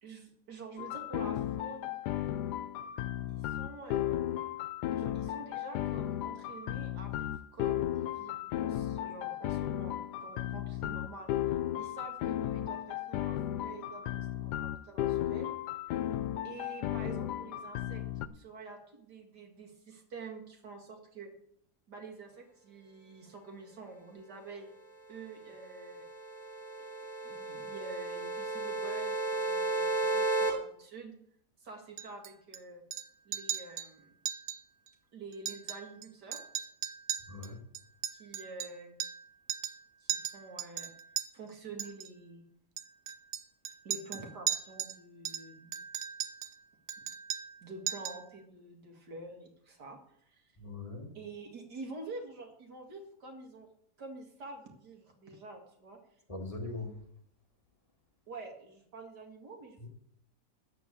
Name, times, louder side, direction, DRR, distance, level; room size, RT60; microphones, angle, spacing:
voice 1, 0.0-1.9 3.3-4.4 4.9-15.5 16.4-18.0 18.3-21.3 21.9-24.7 25.1-26.0 26.8-26.9 27.2-31.1 31.6-32.8 33.3-34.1 35.1-36.4 38.1-39.0 40.0-40.9 41.3-42.4 43.8-45.7 47.0-47.1 47.6-50.0 50.3-50.4 51.1-53.7 54.0-56.0 58.3-59.8, right 3 dB, 90° right, 2 dB, 2.6 m, -47 dB
sound 1, 0.8-18.3, left 12 dB, 90° left, 1.2 m, -35 dB
sound 2, 25.6-30.5, right 2 dB, ahead, 3.4 m, -33 dB
Chink clink, 32.0-32.6 32.9-33.1 33.3-33.9 34.3-34.6 34.9-35.0 35.3-36.1 36.3-39.2 39.5-39.8 40.1-41.3 41.8-42.1 42.8-45.0 45.2-46.6 46.9-47.6 47.9-48.3, right 10 dB, 75° right, 1.2 m, -37 dB
voice 2, 37.3-37.6 50.6-51.1 56.3-57.0 59.8-59.9, left 2 dB, 20° left, 0 dB, 1.7 m, -41 dB
13.5 x 4.6 x 8.4 m, 0.69 s
omnidirectional pair, 1.7 m